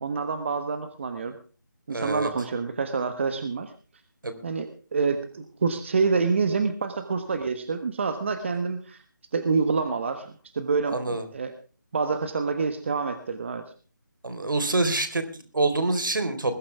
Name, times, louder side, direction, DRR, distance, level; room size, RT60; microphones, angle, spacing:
voice 1, 0.0-1.4 1.9-3.7 4.4-9.0 9.3-11.5 11.9-13.6, right 4 dB, 35° right, 9 dB, 1.4 m, -27 dB
voice 2, 1.9-2.3 4.2-4.3 10.9-11.2 14.2-16.5, right 2 dB, 75° right, 10 dB, 4.2 m, -26 dB
21.0 x 13.0 x 3.5 m, 0.38 s
figure-of-eight pair, 170°, 11 cm